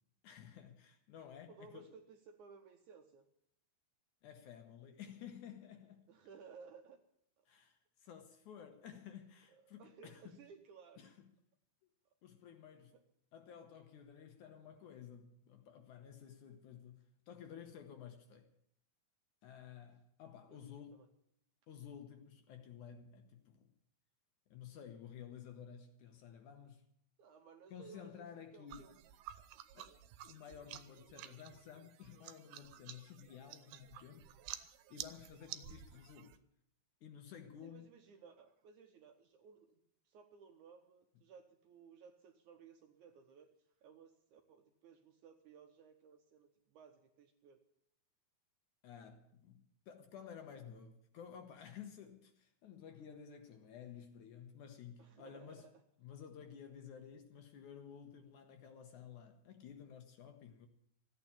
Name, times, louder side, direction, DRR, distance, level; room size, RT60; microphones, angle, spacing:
voice 1, 0.2-1.9 4.2-6.1 7.5-10.4 11.0-11.3 12.2-12.9 13.3-18.5 19.4-21.0 21.7-23.7 24.5-26.8 27.7-28.9 29.4-29.5 29.7-34.3 34.9-36.4 37.0-37.9 48.8-55.7 56.0-60.7, left 8 dB, 65° left, 2.1 m, -53 dB
voice 2, 1.5-3.3 6.1-7.0 7.4-7.5 9.8-11.1 12.9-13.0 20.5-20.6 20.9-21.1 27.2-28.3 28.5-28.9 37.6-39.8 40.1-43.5 43.8-47.6 55.0-55.7, right 6 dB, 70° right, 1.9 m, -59 dB
sound 1, 28.7-36.4, right 12 dB, 90° right, 2.7 m, -52 dB
14.5 x 9.0 x 8.7 m
omnidirectional pair, 4.3 m